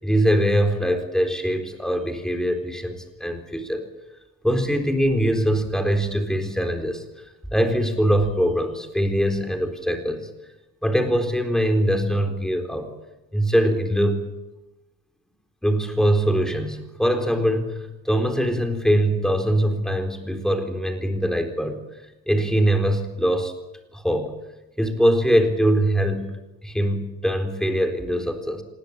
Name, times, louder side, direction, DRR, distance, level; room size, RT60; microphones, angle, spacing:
voice 1, 0.0-3.8 4.4-7.0 7.5-10.3 10.8-12.9 13.3-14.2 15.6-21.8 22.3-23.5 23.9-24.3 24.8-26.3 26.6-28.6, equal, ahead, 6 dB, 4.0 m, -22 dB
26.5 x 21.0 x 9.0 m, 1.0 s
wide cardioid pair, 130°, 36 cm